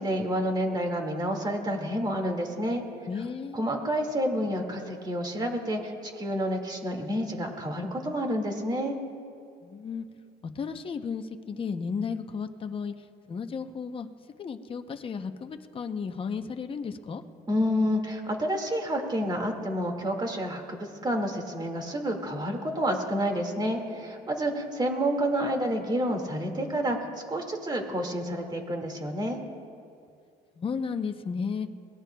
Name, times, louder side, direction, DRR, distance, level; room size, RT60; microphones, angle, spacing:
voice 1, 0.0-2.8 3.5-9.0 17.5-27.0 27.3-29.4, equal, 25° right, 3 dB, 2.0 m, -29 dB
voice 2, 3.1-3.7 9.6-10.1 10.4-14.1 14.4-17.2 24.2-24.3 30.6-31.7, left 5 dB, 30° left, 7 dB, 0.7 m, -34 dB
23.0 x 18.5 x 2.3 m, 2.4 s
cardioid pair, 110°, 17 cm